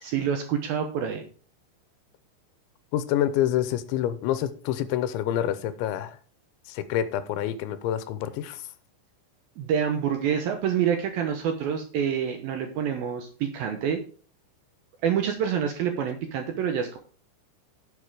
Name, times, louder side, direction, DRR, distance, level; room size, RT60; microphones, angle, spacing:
voice 1, 0.0-1.2 9.6-14.0 15.0-17.0, right 8 dB, 75° right, 2.3 m, -27 dB
voice 2, 2.9-6.2 6.7-8.6, left 11 dB, 90° left, 3.1 m, -27 dB
9.9 x 7.3 x 4.9 m
omnidirectional pair, 5.3 m